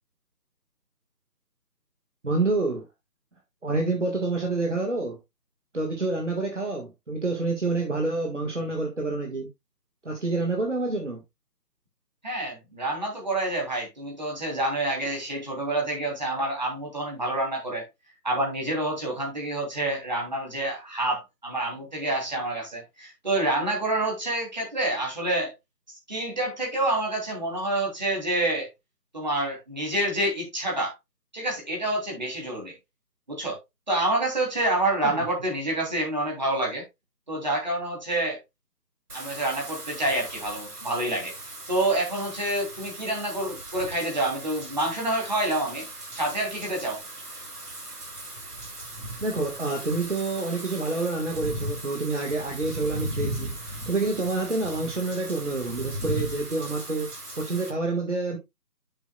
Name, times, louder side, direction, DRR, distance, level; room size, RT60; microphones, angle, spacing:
voice 1, 2.2-2.8 3.6-5.2 5.7-9.5 10.0-11.2 35.0-35.2 49.2-53.5 53.9-57.1 57.4-58.4, right 3 dB, 45° right, 1.7 m, -28 dB
voice 2, 12.2-17.9 18.2-25.5 26.1-28.7 29.1-30.9 31.3-32.7 33.3-33.6 33.9-36.8 37.3-38.4 39.1-41.3 41.7-45.8 46.1-47.0, right 1 dB, 25° right, 3.1 m, -27 dB
Wind / Rain, 39.1-57.7, right 1 dB, 65° right, 3.0 m, -38 dB
10.0 x 7.2 x 2.3 m
figure-of-eight pair, 170°, 49 cm